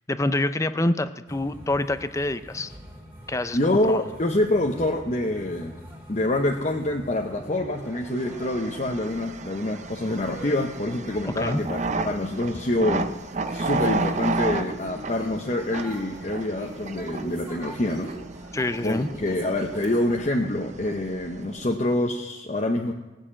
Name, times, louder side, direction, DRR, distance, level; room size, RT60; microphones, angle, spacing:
voice 1, 0.1-2.7 3.3-3.6 3.9-4.0 11.3-11.6 18.5-19.1, left 2 dB, 15° left, 12 dB, 0.5 m, -26 dB
sound 1, 1.3-20.2, right 1 dB, 10° right, 2.5 m, -43 dB
voice 2, 3.5-5.8 6.1-13.1 13.5-18.1 18.8-22.9, left 1 dB, 40° left, 2 dB, 0.8 m, -26 dB
sound 2, 8.0-21.9, right 3 dB, 40° right, 0.6 m, -33 dB
18.5 x 6.7 x 8.6 m, 1.2 s
head